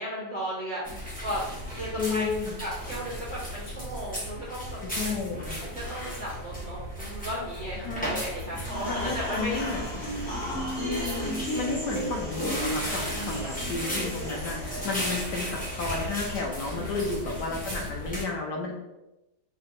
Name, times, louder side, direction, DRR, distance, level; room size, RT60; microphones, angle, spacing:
voice 1, 0.0-2.3 2.6-5.2 5.6-9.6 10.3-11.0 13.4-13.5 16.7-17.0, equal, 30° left, -12 dB, 1.6 m, -36 dB
sound 1, 0.8-18.2, equal, 5° left, 1.1 m, -36 dB
voice 2, 2.0-2.6 4.8-5.6 7.8-8.2 8.9-10.0 10.8-18.8, left 4 dB, 85° left, 1 dB, 1.5 m, -32 dB
sound 2, 8.7-16.9, equal, 65° left, 2.3 m, -35 dB
4.8 x 3.3 x 3.0 m, 0.95 s
omnidirectional pair, 1.8 m